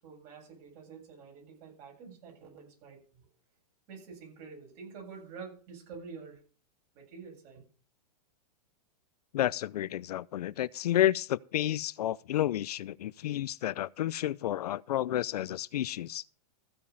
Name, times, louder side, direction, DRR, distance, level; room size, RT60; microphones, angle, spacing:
voice 1, 0.0-3.2 3.9-6.4 6.9-7.6, right 5 dB, 40° right, 7.9 m, -48 dB
voice 2, 9.3-16.2, left 12 dB, 80° left, 0.5 m, -31 dB
15.0 x 5.4 x 6.7 m
hypercardioid pair, 140°, 20 cm